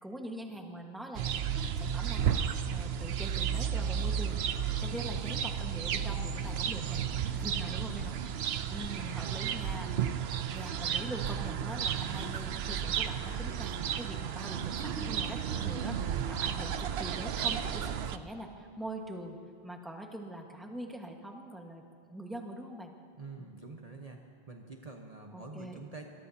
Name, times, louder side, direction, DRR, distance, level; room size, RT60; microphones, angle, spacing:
voice 1, 0.0-4.4 4.8-10.1 10.5-19.4 19.6-21.8 22.1-22.9 23.4-23.7 25.3-25.8, right 1 dB, ahead, 1 dB, 1.4 m, -43 dB
sound 1, 1.2-18.2, right 8 dB, 80° right, 0.9 m, -33 dB
voice 2, 6.7-7.3 9.0-9.4 23.1-24.2 24.5-26.1, right 3 dB, 40° right, 1 dB, 1.1 m, -47 dB
24.0 x 21.5 x 2.8 m, 2.4 s
omnidirectional pair, 1.0 m